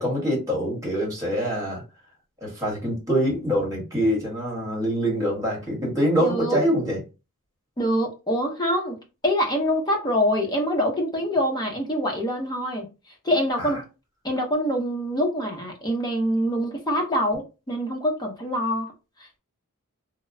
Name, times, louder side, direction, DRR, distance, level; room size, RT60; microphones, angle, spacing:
voice 1, 0.0-1.8 2.4-7.0 13.6-13.7, equal, 15° right, 1.2 m, -24 dB
voice 2, 6.2-6.6 7.8-9.0 9.2-12.9 13.2-13.8 14.2-18.9, equal, 20° left, 0.6 m, -25 dB
2.8 x 2.0 x 2.5 m
head